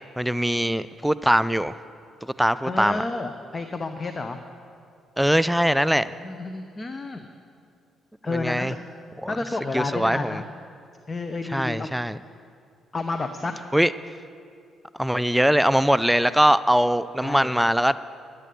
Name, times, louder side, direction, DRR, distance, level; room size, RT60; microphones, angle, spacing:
voice 1, 0.2-1.8 2.2-3.0 5.2-6.2 8.3-8.7 9.2-9.3 9.7-10.4 11.5-12.2 13.7-13.9 15.0-18.0, equal, 5° right, 15 dB, 0.3 m, -21 dB
voice 2, 2.6-4.4 6.2-7.3 8.2-8.8 9.3-10.5 11.1-11.9 12.9-13.5 17.2-17.5, left 3 dB, 30° left, 7 dB, 0.7 m, -30 dB
11.0 x 8.3 x 9.2 m, 2.4 s
cardioid pair, 90°, 0 cm